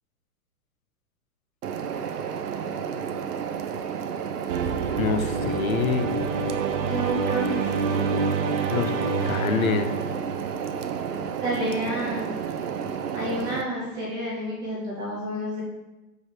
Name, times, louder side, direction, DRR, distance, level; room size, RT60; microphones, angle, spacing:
sound 1, 1.6-13.6, right 7 dB, 85° right, 0.8 m, -31 dB
sound 2, 4.5-10.9, right 4 dB, 50° right, 0.8 m, -28 dB
voice 1, 5.0-6.1 8.7-8.9 9.3-9.9, left 5 dB, 65° left, 9 dB, 0.8 m, -25 dB
voice 2, 6.8-8.1 11.4-12.3 13.1-15.6, right 1 dB, 10° right, -5 dB, 0.5 m, -30 dB
6.1 x 5.1 x 5.1 m, 1.1 s
hypercardioid pair, 150°, 45 cm